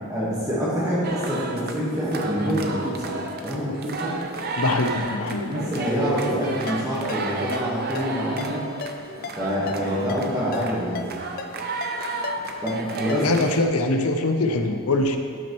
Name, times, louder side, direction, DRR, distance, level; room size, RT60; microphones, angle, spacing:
voice 1, 0.1-3.1 3.4-4.2 5.4-8.7 9.4-11.1 12.6-13.3, equal, 15° right, -8 dB, 1.5 m, -26 dB
sound 1, 1.0-13.6, right 2 dB, 45° right, 0.6 m, -32 dB
voice 2, 4.6-5.5 13.2-15.2, left 2 dB, 75° left, 6 dB, 0.7 m, -23 dB
Ringtone, 6.7-13.5, left 4 dB, 40° left, 0.3 m, -38 dB
12.5 x 6.1 x 3.1 m, 2.3 s
head